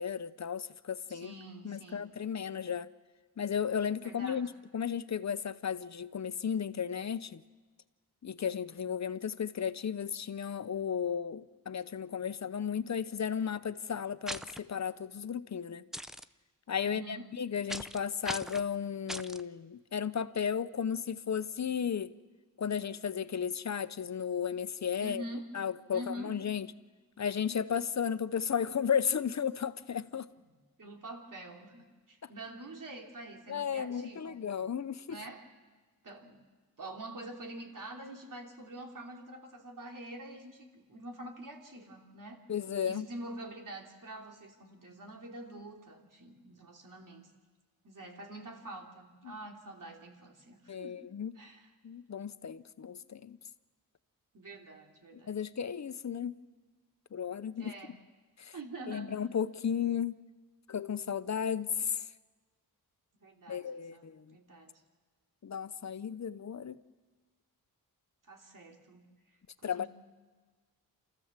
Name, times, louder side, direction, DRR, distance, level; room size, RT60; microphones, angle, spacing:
voice 1, 0.0-1.3 1.6-2.9 3.4-7.4 8.2-15.9 16.7-22.1 22.6-25.2 25.5-26.7 27.2-30.3 33.5-35.2 42.5-43.1 50.7-51.4 51.8-53.4 55.1-56.4 57.1-57.7 58.4-58.5 58.9-60.2 60.7-62.1 63.5-64.3 65.4-66.8 69.6-69.9, left 7 dB, 45° left, 0.8 m, -34 dB
voice 2, 1.1-2.1 4.0-4.4 16.8-17.3 25.0-25.5 25.9-26.3 30.8-34.4 35.1-35.5 36.0-36.4 36.8-42.4 42.8-47.3 47.8-51.1 51.3-51.7 54.3-55.4 57.5-57.9 58.5-59.2 63.2-64.0 64.3-64.8 68.2-69.1 69.6-69.9, right 1 dB, 55° right, 3.1 m, -46 dB
sound 1, 14.3-14.6 15.9-16.2 17.7-18.0 18.2-18.6 19.1-19.4, equal, ahead, 0.6 m, -39 dB
28.0 x 14.5 x 7.4 m
cardioid pair, 75°, 38 cm